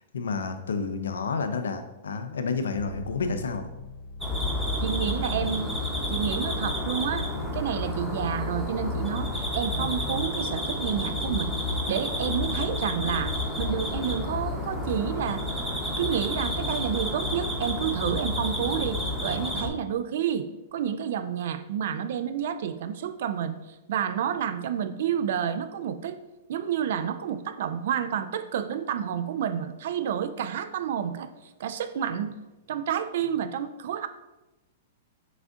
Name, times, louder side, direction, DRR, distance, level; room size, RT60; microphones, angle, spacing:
voice 1, 0.1-3.7, left 4 dB, 90° left, 8 dB, 0.4 m, -30 dB
sound 1, 2.8-10.2, left 3 dB, 45° left, 0.7 m, -42 dB
sound 2, 4.2-19.7, left 1 dB, 5° right, 0.9 m, -30 dB
voice 2, 4.8-5.7 6.1-7.3 7.5-15.4 16.0-20.5 20.7-23.6 23.9-26.2 26.5-31.3 31.6-32.3 32.7-34.1, right 8 dB, 65° right, 11 dB, 0.3 m, -29 dB
6.0 x 2.5 x 2.5 m, 1.0 s
hypercardioid pair, 135°, 0 cm